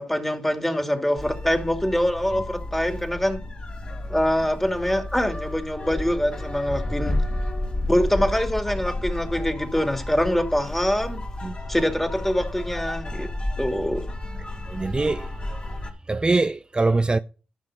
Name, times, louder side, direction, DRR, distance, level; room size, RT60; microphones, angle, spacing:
voice 1, 0.0-3.4 4.1-7.2 7.9-11.2 11.7-13.3 13.6-14.1, equal, 10° left, 2.7 m, -24 dB
sound 1, 1.2-15.9, left 1 dB, 40° left, 3.8 m, -31 dB
voice 2, 14.7-15.3 16.1-17.2, right 3 dB, 30° right, 0.6 m, -22 dB
12.0 x 5.6 x 6.6 m
supercardioid pair, 45°, 3 cm